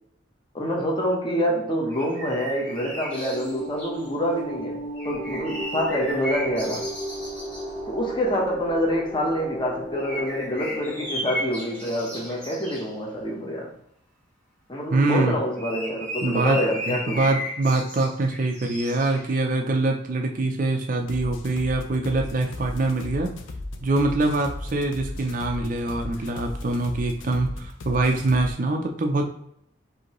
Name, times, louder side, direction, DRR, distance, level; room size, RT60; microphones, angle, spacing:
voice 1, 0.5-6.9 7.9-13.7 14.7-17.3, equal, 25° left, -1 dB, 1.0 m, -26 dB
sound 1, 1.9-4.1 5.0-7.7 9.9-12.9 15.1-19.7, equal, 10° left, 1.3 m, -35 dB
sound 2, 2.6-12.9, equal, 60° left, 1.4 m, -36 dB
voice 2, 14.9-15.4 16.2-16.6 16.9-23.3 23.8-29.2, right 2 dB, 45° right, 2 dB, 0.5 m, -24 dB
sound 3, 21.0-28.5, left 2 dB, 80° left, 0.5 m, -36 dB
5.1 x 2.8 x 3.0 m, 0.71 s
head